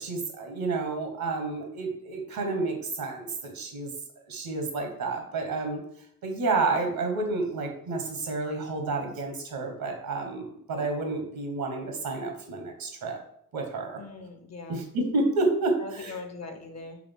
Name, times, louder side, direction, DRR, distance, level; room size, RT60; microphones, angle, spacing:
voice 1, 0.0-3.9 4.3-5.8 6.2-13.2 13.5-14.0 14.7-16.2, right 3 dB, 70° right, 3 dB, 1.1 m, -30 dB
voice 2, 14.0-14.8 15.8-17.0, left 3 dB, 45° left, 6 dB, 0.9 m, -41 dB
3.8 x 3.3 x 3.5 m, 0.70 s
supercardioid pair, 40°, 37 cm